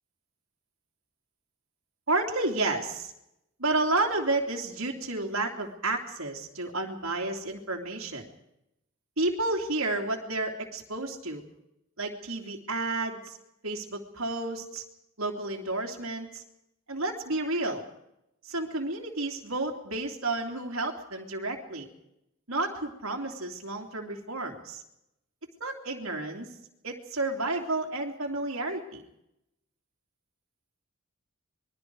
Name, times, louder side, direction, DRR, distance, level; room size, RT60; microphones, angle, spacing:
voice 1, 2.1-3.1 3.6-8.3 9.2-11.4 12.0-13.4 13.6-14.8 15.2-16.4 16.9-17.8 18.4-21.9 22.5-24.8 25.6-26.5 26.8-29.0, right 2 dB, 70° right, 1 dB, 3.1 m, -31 dB
27.0 x 22.0 x 4.8 m, 0.83 s
head